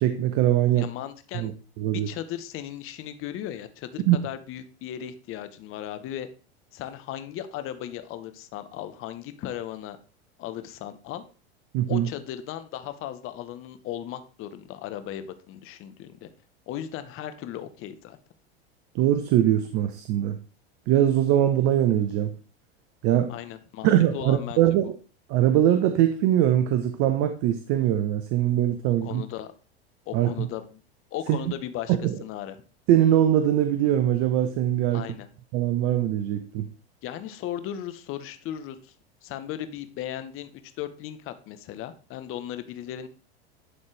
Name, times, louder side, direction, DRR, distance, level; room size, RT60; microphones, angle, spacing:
voice 1, 0.0-0.9 1.3-1.5 1.8-2.1 4.1-4.2 11.7-12.1 18.9-20.4 20.9-22.3 23.0-23.4 23.8-24.9 25.3-29.2 30.1-30.5 31.3-31.4 31.9-32.1 32.9-35.1 35.5-36.7, right 11 dB, 50° right, 9 dB, 0.8 m, -22 dB
voice 2, 0.8-1.5 1.9-6.3 6.7-10.0 10.4-11.2 11.9-16.3 16.7-18.2 23.3-24.6 28.9-29.5 30.1-30.8 31.1-32.6 34.9-35.3 37.0-38.9 39.2-43.1, left 11 dB, 45° left, 10 dB, 1.0 m, -36 dB
11.0 x 4.3 x 3.3 m, 0.37 s
hypercardioid pair, 95°, 31 cm